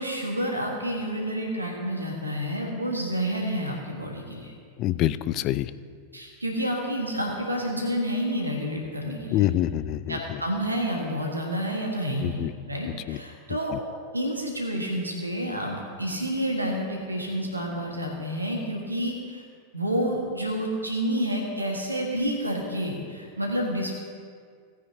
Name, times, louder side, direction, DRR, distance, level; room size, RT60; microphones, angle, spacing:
voice 1, 0.0-4.5 6.1-9.5 10.1-13.8 14.1-19.4 19.7-23.9, equal, 85° right, 0 dB, 1.6 m, -29 dB
voice 2, 4.8-5.7 9.3-10.4 12.2-12.5 12.8-13.2 13.7-13.8, left 13 dB, 40° left, 15 dB, 0.4 m, -26 dB
17.0 x 9.3 x 2.9 m, 2.1 s
figure-of-eight pair, 90°, 0 cm